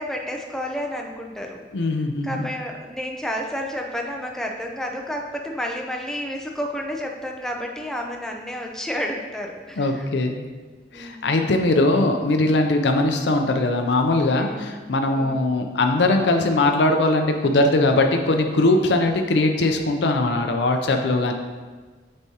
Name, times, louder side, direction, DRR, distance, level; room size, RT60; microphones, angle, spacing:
voice 1, 0.0-1.6 2.2-10.1 10.9-11.4 14.4-14.8 15.2-15.5, equal, 5° left, 1 dB, 0.5 m, -31 dB
voice 2, 1.7-2.5 9.8-10.4 10.9-21.3, left 2 dB, 65° left, 4 dB, 0.5 m, -20 dB
8.0 x 4.3 x 2.8 m, 1.4 s
head